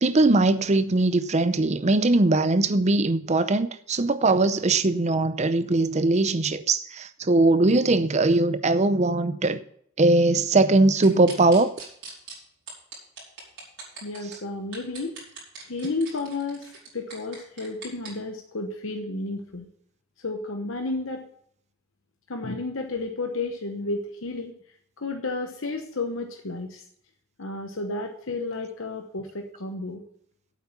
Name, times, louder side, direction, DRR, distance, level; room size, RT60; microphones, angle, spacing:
voice 1, 0.0-9.6 10.0-11.7, right 2 dB, 30° right, 0.6 m, -21 dB
sound 1, 11.0-12.3 12.7-14.4 14.7-18.1, right 4 dB, 60° right, 5.0 m, -40 dB
voice 2, 14.0-15.1 15.6-19.7 20.2-21.3 22.3-24.5 25.0-26.8 27.4-30.0, left 3 dB, 60° left, 1.0 m, -32 dB
8.6 x 8.3 x 7.1 m
head